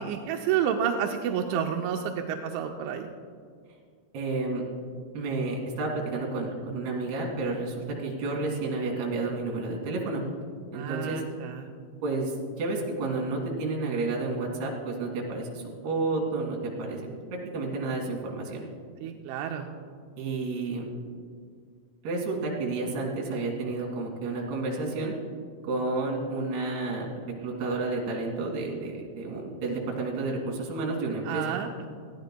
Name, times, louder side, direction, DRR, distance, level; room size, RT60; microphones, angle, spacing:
voice 1, 0.0-3.1 10.7-11.7 19.0-19.7 31.2-31.9, right 8 dB, 90° right, 3 dB, 3.1 m, -30 dB
voice 2, 4.1-4.6 5.1-10.2 10.7-11.2 12.0-17.1 17.5-18.7 20.2-20.9 22.0-25.1 25.6-27.1 27.4-31.5, right 3 dB, 65° right, -1 dB, 4.1 m, -31 dB
20.0 x 15.0 x 2.2 m, 2.1 s
omnidirectional pair, 5.3 m